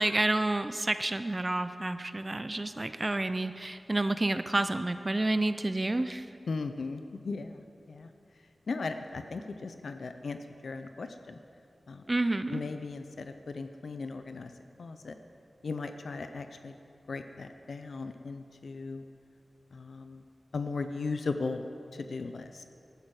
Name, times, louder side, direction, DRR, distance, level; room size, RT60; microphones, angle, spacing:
voice 1, 0.0-6.3 12.1-12.6, right 2 dB, 30° right, 11 dB, 0.4 m, -29 dB
voice 2, 6.5-7.6 7.9-8.1 8.7-10.4 10.6-11.4 11.9-12.0 12.5-14.5 14.8-15.1 15.6-16.7 17.1-19.0 19.7-20.2 20.5-21.6 21.9-22.6, left 4 dB, 80° left, 8 dB, 0.6 m, -37 dB
14.0 x 11.5 x 4.8 m, 2.6 s
wide cardioid pair, 65°, 0 cm